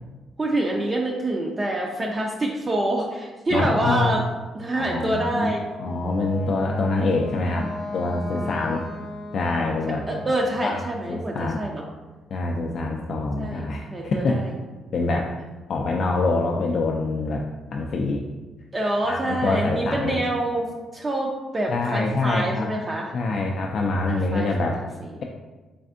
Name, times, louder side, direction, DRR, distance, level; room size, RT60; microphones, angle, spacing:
voice 1, 0.4-4.2 4.5-5.6 8.3-8.7 10.1-11.8 13.4-13.6 13.9-14.5 18.7-20.7 20.9-23.1 24.1-24.5 24.7-25.2, right 1 dB, 25° right, -1 dB, 0.4 m, -26 dB
voice 2, 3.5-4.2 4.8-5.5 5.8-8.8 9.3-10.0 10.6-10.8 11.1-11.6 12.3-14.4 14.9-15.3 15.7-17.4 17.7-18.2 19.0-20.1 21.7-22.7 23.1-24.8, left 3 dB, 60° left, 0 dB, 0.3 m, -25 dB
Wind instrument woodwind instrument, 5.6-10.5, left 2 dB, 40° left, 0.8 m, -36 dB
3.4 x 3.3 x 2.5 m, 1.3 s
cardioid pair, 90°, 0 cm